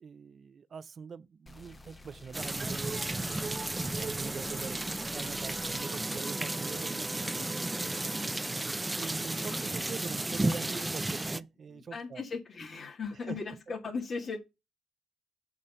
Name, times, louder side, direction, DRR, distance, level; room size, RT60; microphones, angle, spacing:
voice 1, 0.0-7.7 9.0-12.2 13.1-13.4, right 6 dB, 55° right, 0.6 m, -44 dB
sound 1, 1.5-5.9, left 2 dB, 25° left, 1.2 m, -52 dB
sound 2, 2.3-11.4, right 2 dB, 20° right, 0.7 m, -33 dB
sound 3, 2.6-9.1, right 4 dB, 40° right, 1.6 m, -46 dB
voice 2, 7.7-9.1 9.4-9.9 11.7-14.4, left 4 dB, 50° left, 2.1 m, -40 dB
7.4 x 4.1 x 6.7 m
supercardioid pair, 55°, 0 cm